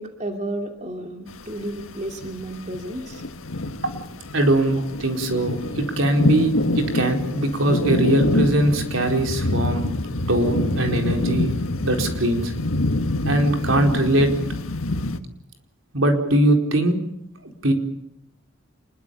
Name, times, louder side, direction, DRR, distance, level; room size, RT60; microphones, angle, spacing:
voice 1, 0.0-3.2 4.8-4.9, right 1 dB, 35° right, 4 dB, 2.7 m, -32 dB
sound 1, 1.3-15.2, left 2 dB, 90° left, 1.6 m, -26 dB
voice 2, 4.3-9.9 10.3-11.5 11.8-12.5 13.2-14.3 15.9-17.0 17.4-17.7, right 1 dB, 75° right, 4 dB, 4.4 m, -21 dB
27.0 x 22.0 x 7.1 m, 0.77 s
head